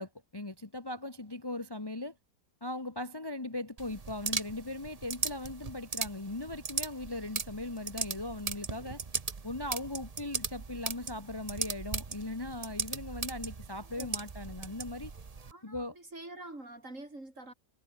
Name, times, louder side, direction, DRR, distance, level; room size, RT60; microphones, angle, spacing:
voice 1, 0.0-2.2 2.6-9.0 9.4-15.1 15.6-15.9, left 2 dB, 15° left, 1.4 m, -39 dB
sound 1, 3.8-15.5, right 4 dB, 30° right, 0.9 m, -38 dB
voice 2, 13.7-14.2 15.5-17.5, right 2 dB, 45° right, 6.4 m, -47 dB
omnidirectional pair, 1.8 m